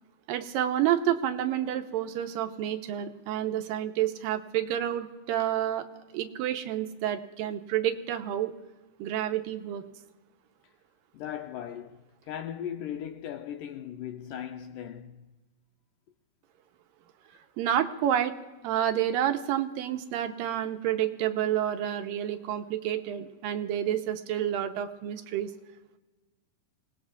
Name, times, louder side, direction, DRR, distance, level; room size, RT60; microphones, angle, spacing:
voice 1, 0.3-5.9 6.1-8.5 9.0-9.8 17.6-18.3 18.6-25.5, right 11 dB, 85° right, 2.4 m, -29 dB
voice 2, 11.1-12.0 12.3-15.3, left 10 dB, 80° left, 2.1 m, -38 dB
27.5 x 18.5 x 2.4 m
omnidirectional pair, 4.0 m